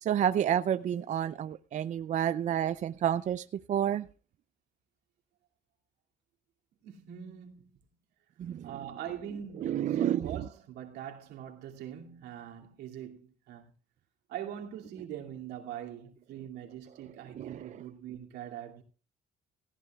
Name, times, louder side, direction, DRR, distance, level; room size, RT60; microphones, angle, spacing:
voice 1, 0.0-4.1 8.4-8.7 9.6-10.3 17.4-17.6, right 10 dB, 45° right, 0.5 m, -29 dB
voice 2, 6.8-7.7 8.6-13.7 14.3-18.8, right 10 dB, 85° right, 2.6 m, -43 dB
18.0 x 14.5 x 2.4 m
cardioid pair, 110°, 17 cm